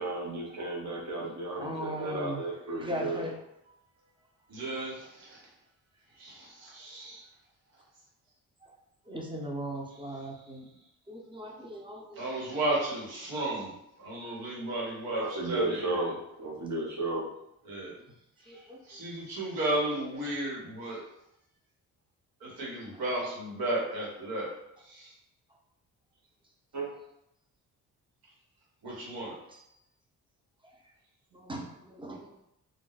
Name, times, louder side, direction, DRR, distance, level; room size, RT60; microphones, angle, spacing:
voice 1, 0.0-3.3 15.1-16.1 16.4-17.2 26.7-26.9, right 2 dB, 55° right, -3 dB, 0.9 m, -33 dB
voice 2, 1.5-2.4 2.8-3.3 9.1-10.6 11.1-12.5 18.5-18.8 28.9-29.0 31.4-32.2, equal, 15° right, 0 dB, 0.7 m, -38 dB
voice 3, 4.5-5.4 6.2-7.2 12.1-13.7 14.0-16.0 17.6-17.9 18.9-21.0 22.4-24.5 24.9-25.1 28.8-29.3, right 1 dB, 80° right, -5 dB, 1.3 m, -34 dB
2.4 x 2.1 x 3.9 m, 0.82 s
cardioid pair, 70°, 35 cm